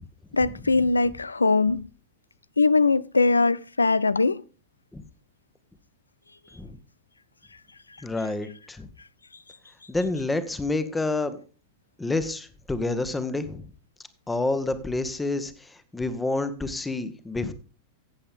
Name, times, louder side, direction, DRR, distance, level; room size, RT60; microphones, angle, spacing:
voice 1, 0.3-1.9 2.6-4.4, left 3 dB, 80° left, 0.4 m, -21 dB
voice 2, 8.0-8.9 9.9-11.4 12.0-13.6 14.3-17.5, left 2 dB, 10° left, 1.1 m, -28 dB
14.5 x 8.3 x 3.5 m
figure-of-eight pair, 90°, 0 cm